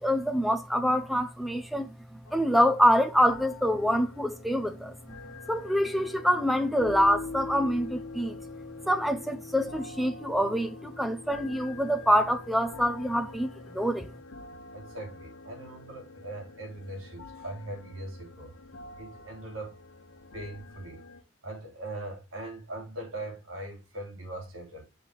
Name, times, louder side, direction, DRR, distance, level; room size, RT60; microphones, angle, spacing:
voice 1, 0.0-5.2 5.5-8.4 8.9-14.1, equal, ahead, 0.6 m, -26 dB
sound 1, 2.2-21.2, left 3 dB, 90° left, 0.9 m, -45 dB
voice 2, 14.7-18.5 19.0-19.8 20.3-21.0 21.4-25.0, right 1 dB, 85° right, 3.0 m, -40 dB
6.8 x 3.6 x 4.6 m
head